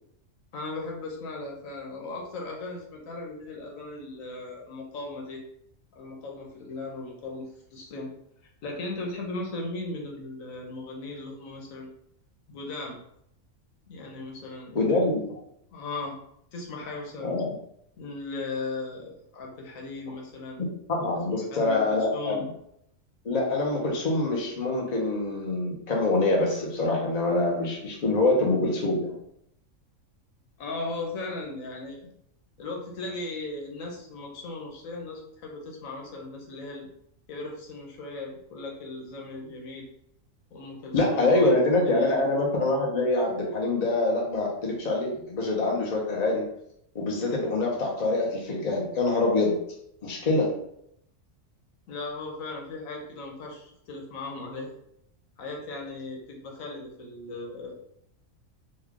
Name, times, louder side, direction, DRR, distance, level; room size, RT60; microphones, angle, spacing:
voice 1, 0.5-5.4 5.9-8.1 8.6-11.9 12.5-13.0 13.9-15.0 15.7-16.2 16.5-17.4 18.0-20.6 21.3-22.5 30.6-32.0 32.6-36.9 37.3-39.9 40.5-41.5 41.8-42.2 51.9-54.7 55.4-57.7, left 2 dB, 90° left, 0 dB, 1.2 m, -37 dB
voice 2, 14.7-15.4 17.2-17.5 20.9-22.4 23.2-29.1 40.9-46.4 46.9-49.5 50.0-50.5, left 2 dB, 35° left, -1 dB, 0.8 m, -25 dB
3.2 x 2.3 x 3.6 m, 0.73 s
omnidirectional pair, 1.4 m